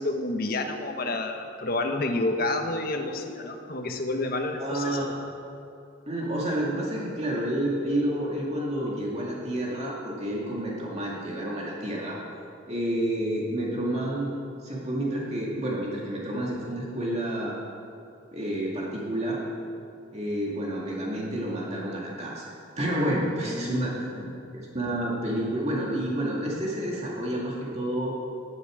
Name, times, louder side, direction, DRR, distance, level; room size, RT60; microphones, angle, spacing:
voice 1, 0.0-5.1 23.4-24.4, left 2 dB, 55° left, 4 dB, 1.3 m, -30 dB
voice 2, 4.6-5.2 6.1-12.2 12.7-14.3 14.6-17.6 18.3-19.4 20.1-22.4 22.8-24.1 24.7-28.2, right 1 dB, 35° right, -4 dB, 2.1 m, -29 dB
18.0 x 11.0 x 5.0 m, 2.5 s
head